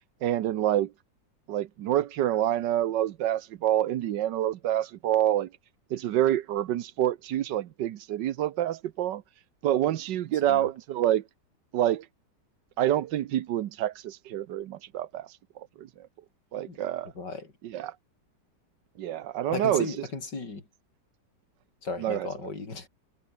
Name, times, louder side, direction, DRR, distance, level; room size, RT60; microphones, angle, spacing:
voice 1, 0.2-0.9 1.5-5.5 5.9-9.2 9.6-11.2 11.7-12.1 12.8-15.3 15.6-16.1 16.5-17.1 17.6-17.9 19.0-20.0 22.0-22.3, right 12 dB, 85° right, 1.5 m, -27 dB
voice 2, 17.2-17.5 19.5-20.6 21.8-22.9, left 3 dB, 75° left, 4.7 m, -35 dB
omnidirectional pair, 1.9 m